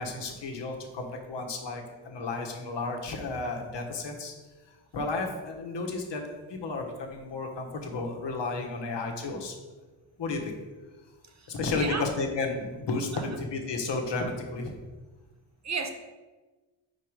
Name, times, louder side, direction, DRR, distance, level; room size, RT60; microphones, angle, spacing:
voice 1, 0.0-4.3 4.9-9.5 10.2-10.5 11.5-14.7, left 3 dB, 60° left, 2 dB, 1.3 m, -32 dB
voice 2, 11.3-12.1 13.1-13.4 15.6-15.9, right 4 dB, 35° right, 5 dB, 0.8 m, -34 dB
4.8 x 4.6 x 4.7 m, 1.2 s
cardioid pair, 75°, 48 cm